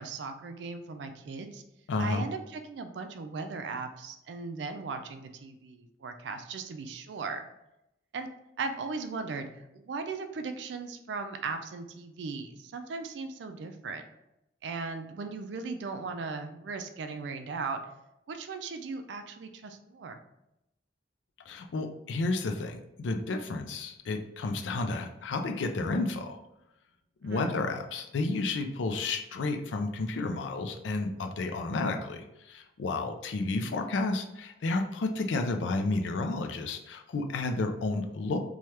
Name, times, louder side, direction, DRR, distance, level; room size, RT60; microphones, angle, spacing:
voice 1, 0.0-1.6 2.0-7.4 8.1-8.3 8.6-9.5 9.7-14.0 14.6-17.8 18.3-20.2 27.2-27.5, right 4 dB, 65° right, 7 dB, 0.3 m, -37 dB
voice 2, 1.9-2.3 21.5-26.4 27.2-38.4, left 3 dB, 75° left, 6 dB, 0.4 m, -31 dB
3.2 x 2.3 x 2.8 m, 0.86 s
head